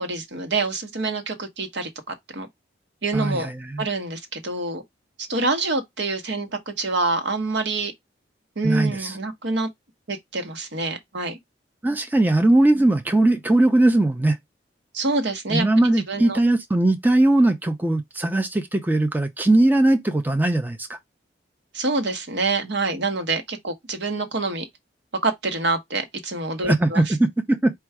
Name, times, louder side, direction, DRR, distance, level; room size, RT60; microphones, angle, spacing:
voice 1, 0.0-2.5 3.0-3.5 3.8-4.8 5.3-7.9 8.6-9.7 10.1-11.4 14.9-15.7 16.1-16.4 21.7-24.7 25.2-27.1, right 3 dB, 75° right, 1.0 m, -26 dB
voice 2, 3.1-3.8 8.6-9.2 11.8-14.4 15.5-21.0 26.6-27.7, right 2 dB, 10° right, 0.4 m, -20 dB
4.5 x 2.3 x 4.6 m
head